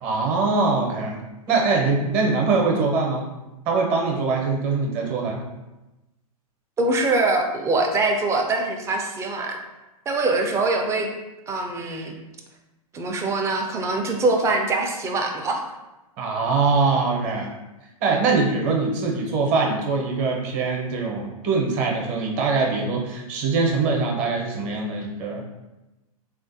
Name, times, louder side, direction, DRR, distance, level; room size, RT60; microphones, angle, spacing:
voice 1, 0.0-1.2 1.5-3.3 3.7-5.4 16.2-17.5 18.0-25.4, right 4 dB, 40° right, 0 dB, 0.7 m, -23 dB
voice 2, 6.8-9.6 10.1-11.1 11.5-12.1 12.9-15.6, right 2 dB, 15° right, 2 dB, 0.3 m, -23 dB
3.3 x 2.4 x 2.6 m, 1.0 s
hypercardioid pair, 115°, 19 cm